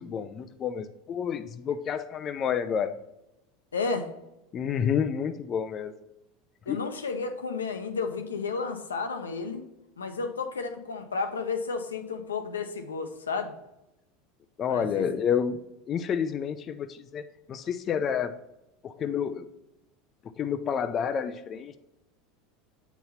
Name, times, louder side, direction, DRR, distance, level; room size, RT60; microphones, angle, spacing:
voice 1, 0.0-3.0 4.5-5.9 6.7-6.8 14.6-15.6 15.9-18.4 18.8-19.5 20.4-21.8, left 7 dB, 40° left, 10 dB, 0.4 m, -29 dB
voice 2, 3.7-4.1 6.7-9.6 10.0-13.6 14.7-15.0, left 4 dB, 85° left, 6 dB, 0.7 m, -32 dB
8.1 x 4.0 x 4.3 m, 0.91 s
hypercardioid pair, 80°, 0 cm